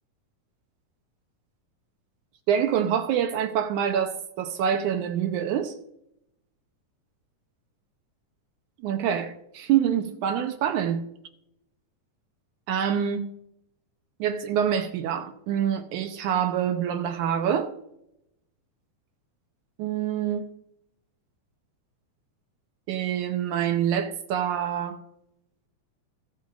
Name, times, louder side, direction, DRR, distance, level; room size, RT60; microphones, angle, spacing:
voice 1, 2.5-5.7 8.8-11.1 12.7-13.2 14.2-17.7 19.8-20.5 22.9-25.0, right 9 dB, 75° right, 2.2 m, -26 dB
23.0 x 8.2 x 2.5 m
omnidirectional pair, 3.7 m